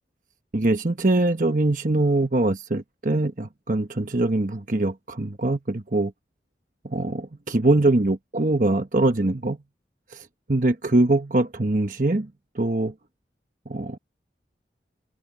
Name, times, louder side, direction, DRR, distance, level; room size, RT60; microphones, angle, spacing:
voice 1, 0.5-6.1 6.8-9.6 10.1-12.9 13.7-14.0, right 2 dB, 45° right, 1.1 m, -23 dB
head